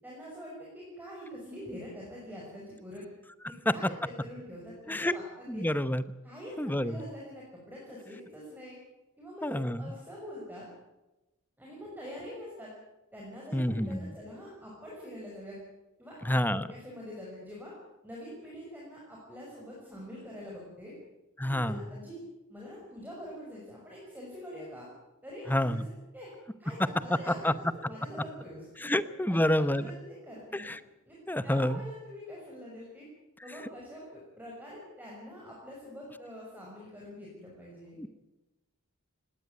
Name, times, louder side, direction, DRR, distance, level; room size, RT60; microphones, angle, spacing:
voice 1, 0.0-3.0 3.7-5.7 6.2-8.8 9.2-10.7 11.6-12.7 13.1-15.6 16.0-17.7 18.0-20.9 21.5-22.2 22.5-24.9 25.2-25.8 26.1-26.3 26.6-29.0 29.3-30.7 31.1-31.2 31.4-33.1 33.4-38.0, equal, 10° right, -4 dB, 6.0 m, -45 dB
voice 2, 5.5-6.0 6.6-7.0 9.4-9.9 13.5-14.1 16.2-16.7 21.4-21.8 25.5-25.9 27.1-27.5 28.8-29.9 30.5-30.8 31.3-31.8 38.0-38.1, left 1 dB, 10° left, 14 dB, 0.9 m, -28 dB
19.5 x 18.0 x 9.3 m, 1.0 s
head